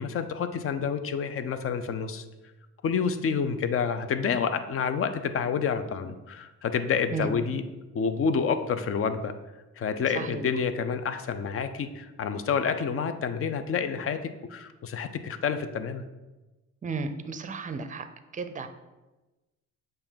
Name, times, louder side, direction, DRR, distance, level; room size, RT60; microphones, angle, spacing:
voice 1, 0.0-2.2 2.8-7.6 7.9-9.3 9.8-16.0, left 6 dB, 50° left, 9 dB, 0.6 m, -28 dB
voice 2, 10.1-10.5 16.8-18.1 18.3-18.7, right 4 dB, 25° right, 10 dB, 0.5 m, -33 dB
6.8 x 2.6 x 5.6 m, 1.1 s
cardioid pair, 90°, 30 cm